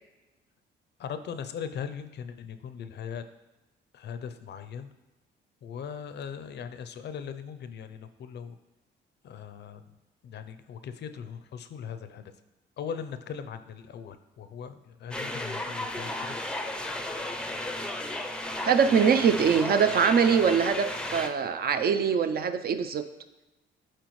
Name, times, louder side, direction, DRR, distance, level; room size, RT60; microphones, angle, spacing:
voice 1, 1.0-3.2 3.9-4.9 5.6-8.6 9.2-10.0 10.2-12.2 12.8-16.4, left 7 dB, 60° left, 11 dB, 0.5 m, -39 dB
sound 1, 15.1-21.3, left 1 dB, 5° left, 0.5 m, -34 dB
voice 2, 18.6-23.0, right 7 dB, 50° right, 9 dB, 0.5 m, -23 dB
9.2 x 4.3 x 3.1 m, 1.0 s
cardioid pair, 90°, 20 cm